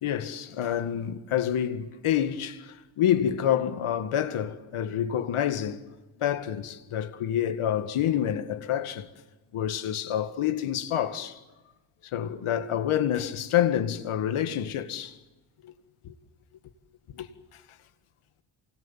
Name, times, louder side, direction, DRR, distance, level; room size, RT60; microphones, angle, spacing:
voice 1, 0.0-5.8 6.2-9.1 9.5-11.4 12.1-15.1 15.6-15.7 16.0-16.1 17.1-17.3, left 10 dB, 80° left, 2.0 m, -28 dB
28.0 x 25.5 x 7.4 m
cardioid pair, 65°, 49 cm